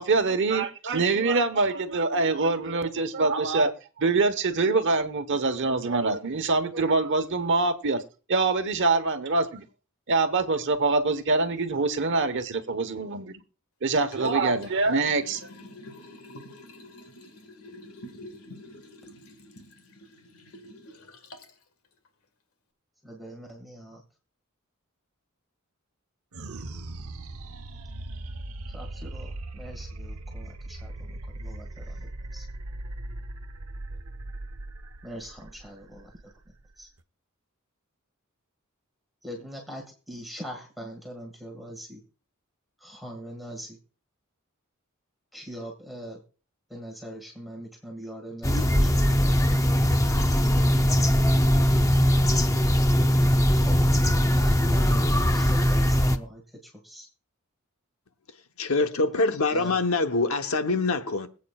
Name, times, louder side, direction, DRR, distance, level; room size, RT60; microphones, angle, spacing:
voice 1, 0.0-3.7 4.0-8.0 8.3-9.6 10.1-13.3 13.8-15.4, right 3 dB, 60° right, 1.1 m, -24 dB
Liquid, 14.0-21.6 22.1-22.2, left 1 dB, 85° left, 1.8 m, -46 dB
voice 2, 23.0-24.0 28.7-32.5 35.0-36.3 36.8-36.9 39.2-42.0 42.8-43.8 45.3-46.2 46.7-49.4 51.1-51.3 53.5-53.9 54.3-57.1 59.5-59.8, equal, ahead, 1.9 m, -42 dB
sound 1, 26.3-37.0, right 2 dB, 80° right, 0.9 m, -39 dB
sound 2, 48.4-56.2, equal, 15° left, 0.7 m, -21 dB
voice 3, 58.6-61.3, left 3 dB, 70° left, 1.0 m, -24 dB
25.0 x 8.4 x 2.4 m
head